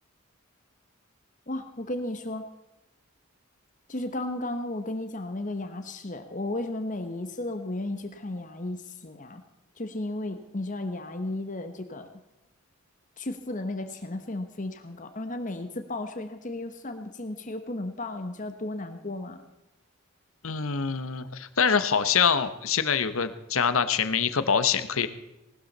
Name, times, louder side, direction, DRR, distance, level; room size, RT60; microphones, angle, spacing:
voice 1, 1.5-2.5 3.9-9.4 9.8-12.1 13.2-19.4, left 2 dB, 35° left, 8 dB, 1.1 m, -34 dB
voice 2, 20.4-25.1, left 6 dB, 70° left, 11 dB, 1.1 m, -25 dB
19.0 x 13.0 x 4.1 m, 0.97 s
head